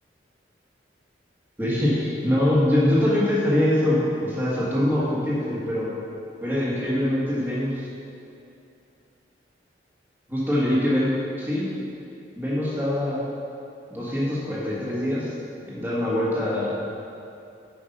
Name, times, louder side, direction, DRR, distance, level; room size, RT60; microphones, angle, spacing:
voice 1, 1.6-5.9 6.4-7.9 10.3-11.7 12.4-13.2 13.9-15.3 15.7-16.8, left 1 dB, 10° right, -7 dB, 1.7 m, -23 dB
8.2 x 5.3 x 5.3 m, 2.6 s
head